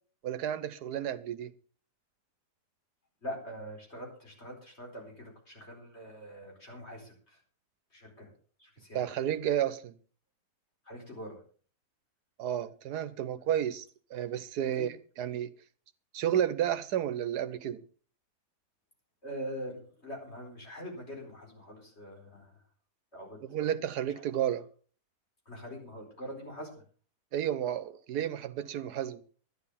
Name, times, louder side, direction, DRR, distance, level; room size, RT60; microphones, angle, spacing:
voice 1, 0.2-1.5 8.9-10.0 12.4-13.8 14.1-15.5 16.1-17.8 23.5-24.7 27.3-29.2, right 10 dB, 85° right, 1.4 m, -31 dB
voice 2, 3.2-7.4 7.9-8.3 8.6-9.1 10.8-11.4 13.4-13.5 14.6-14.9 19.2-22.6 23.1-23.4 24.1-24.2 25.4-26.7, equal, 40° left, 4.8 m, -43 dB
12.0 x 10.0 x 5.6 m
omnidirectional pair, 1.7 m